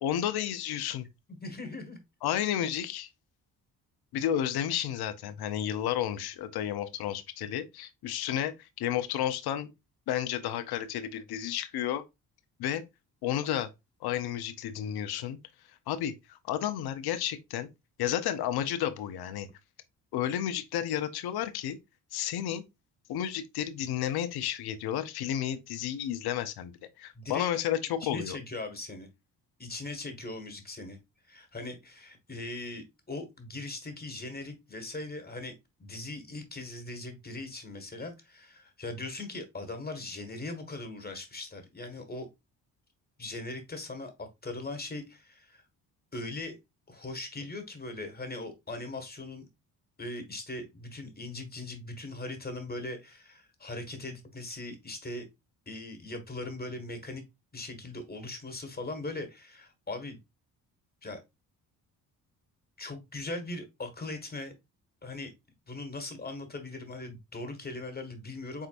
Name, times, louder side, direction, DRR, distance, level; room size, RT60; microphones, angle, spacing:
voice 1, 0.0-1.1 2.2-3.1 4.1-9.7 10.1-12.0 12.6-12.8 13.2-13.7 14.0-15.4 15.7-17.7 18.0-19.5 20.1-21.8 22.1-22.6 23.1-26.7 27.0-28.4, left 10 dB, 70° left, 0.7 m, -32 dB
voice 2, 1.3-2.0 27.1-27.5 28.0-29.1 29.6-31.0 31.3-35.5 35.8-42.3 43.2-45.6 46.1-46.6 46.9-49.5 50.0-55.3 55.7-57.2 57.5-60.2 61.0-61.2 62.8-64.5 65.0-65.3 65.7-68.7, left 2 dB, 25° left, 1.5 m, -40 dB
4.5 x 3.8 x 2.4 m
supercardioid pair, 60°, 39 cm